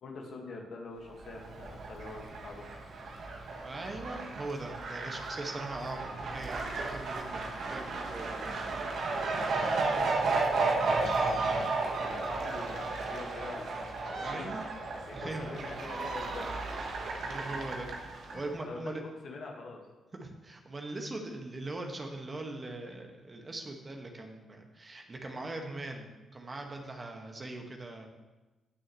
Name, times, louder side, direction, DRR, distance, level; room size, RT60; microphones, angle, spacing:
voice 1, 0.0-2.7 11.5-11.7 12.0-14.5 15.1-16.6 18.3-19.0 19.2-19.8, left 3 dB, 60° left, 0 dB, 1.9 m, -44 dB
Fowl, 1.1-18.5, right 3 dB, 65° right, 1.4 m, -33 dB
voice 2, 3.6-8.3 8.7-8.9 9.2-10.1 11.4-11.6 14.1-14.6 15.1-15.8 17.2-17.9 18.3-19.0 20.1-28.1, right 2 dB, 35° right, 2 dB, 1.8 m, -41 dB
17.5 x 6.4 x 3.2 m, 1.1 s
hypercardioid pair, 40°, 0 cm